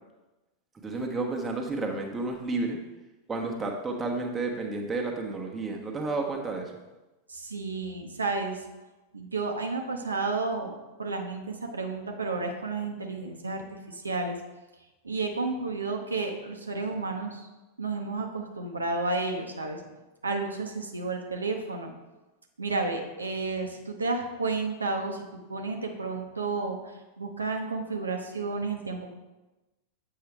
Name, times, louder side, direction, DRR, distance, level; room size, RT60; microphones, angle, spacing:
voice 1, 0.8-2.8 3.3-6.7, right 3 dB, 15° right, 1 dB, 1.0 m, -31 dB
voice 2, 7.3-8.6 9.1-14.4 15.0-17.5 17.8-19.8 20.2-21.9 22.6-29.1, right 3 dB, 75° right, 2 dB, 0.7 m, -32 dB
7.9 x 5.6 x 3.4 m, 1.1 s
figure-of-eight pair, 90°, 0 cm